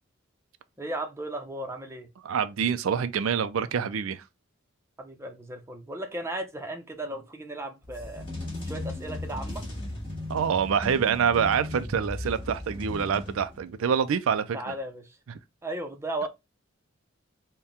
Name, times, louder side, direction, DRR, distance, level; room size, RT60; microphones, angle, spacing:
voice 1, 0.8-2.1 5.0-8.2 8.6-9.6 14.5-15.1 15.6-16.3, right 1 dB, 15° right, 0.6 m, -35 dB
voice 2, 2.2-4.2 10.3-14.7 15.3-15.4, right 7 dB, 85° right, 0.4 m, -26 dB
sound 1, 7.8-13.8, left 1 dB, 25° left, 1.8 m, -36 dB
4.2 x 2.2 x 3.5 m
head